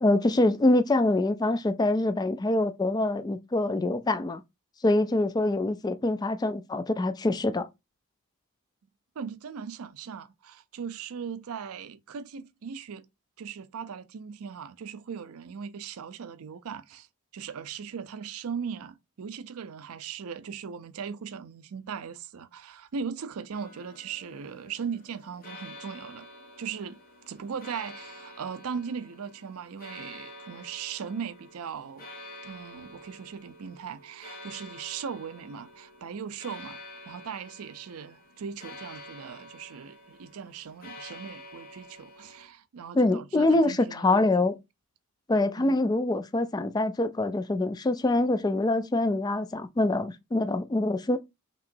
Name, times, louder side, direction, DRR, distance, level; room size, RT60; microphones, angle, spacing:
voice 1, 0.0-4.4 4.8-7.7 42.9-44.6 45.3-51.2, left 2 dB, 20° left, 0.3 m, -25 dB
voice 2, 9.2-13.1 13.4-17.1 17.3-26.3 26.6-27.0 27.3-32.1 32.4-36.8 37.1-44.5 45.6-45.8, right 6 dB, 80° right, 0.4 m, -39 dB
sound 1, 23.5-42.5, left 1 dB, 40° left, 1.0 m, -48 dB
5.6 x 3.0 x 2.5 m
head